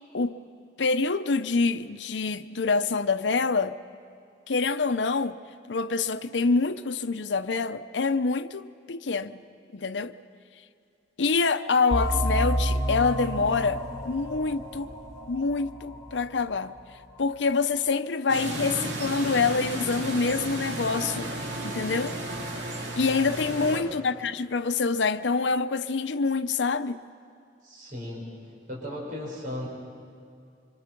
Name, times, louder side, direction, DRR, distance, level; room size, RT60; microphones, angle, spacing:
voice 1, 0.8-3.8 4.5-5.4 5.7-9.4 9.7-10.1 11.2-14.9 15.3-16.7 17.2-21.3 21.6-22.1 23.0-27.0, left 4 dB, 85° left, 0.7 m, -26 dB
sound 1, 11.9-17.2, equal, 20° left, 3.7 m, -30 dB
sound 2, 18.3-23.8, right 1 dB, 85° right, 2.6 m, -33 dB
voice 2, 23.4-23.9 27.6-28.3 28.7-29.7, equal, 50° right, 5.2 m, -36 dB
25.5 x 23.0 x 6.0 m
head